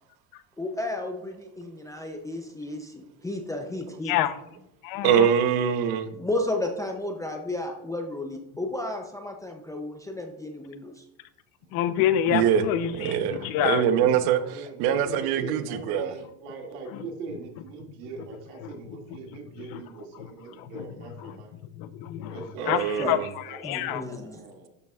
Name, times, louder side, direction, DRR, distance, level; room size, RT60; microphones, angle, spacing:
voice 1, 0.6-4.1 6.1-10.9 22.6-23.1 23.6-24.4, left 2 dB, 10° left, 3 dB, 0.5 m, -33 dB
voice 2, 4.0-4.4 4.8-5.3 11.7-13.8 16.9-17.1 18.6-19.2 19.7-19.8 20.2-20.3 20.6-20.8 21.2-21.3 21.8-23.2 23.5-24.0, left 11 dB, 50° left, 12 dB, 0.8 m, -28 dB
voice 3, 5.0-6.1 12.3-16.1 22.6-23.3, right 8 dB, 55° right, 10 dB, 1.0 m, -24 dB
voice 4, 14.3-21.5 22.3-22.9 23.5-24.7, right 4 dB, 75° right, 1 dB, 2.3 m, -41 dB
12.5 x 6.7 x 2.4 m, 0.85 s
supercardioid pair, 130°, 44 cm